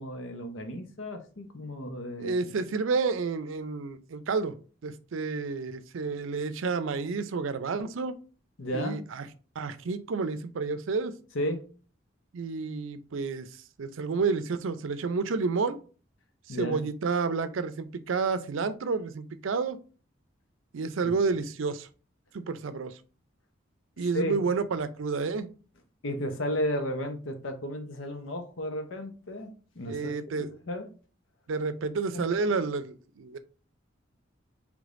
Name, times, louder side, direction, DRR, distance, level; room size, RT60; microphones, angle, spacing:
voice 1, 0.0-2.4 8.6-9.0 11.3-11.7 16.5-16.8 21.0-21.1 24.1-24.4 26.0-30.9 32.1-32.2, equal, 85° left, 0.8 m, -34 dB
voice 2, 2.2-4.6 4.8-8.1 8.7-9.3 9.6-11.2 12.3-13.5 13.8-15.8 16.5-19.8 20.7-21.9 22.3-23.0 24.0-25.5 29.9-30.5 31.5-33.4, right 4 dB, 85° right, 0.5 m, -30 dB
5.0 x 3.3 x 2.5 m
head